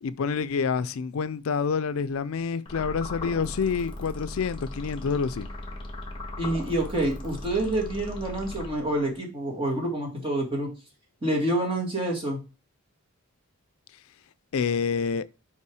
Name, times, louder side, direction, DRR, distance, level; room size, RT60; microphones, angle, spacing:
voice 1, 0.0-5.5 14.5-15.3, left 5 dB, 70° left, 0.4 m, -27 dB
sound 1, 2.7-9.2, left 1 dB, 20° left, 1.2 m, -38 dB
voice 2, 6.4-10.7 11.2-12.4, right 1 dB, 25° right, 2.0 m, -27 dB
5.6 x 4.7 x 4.8 m
head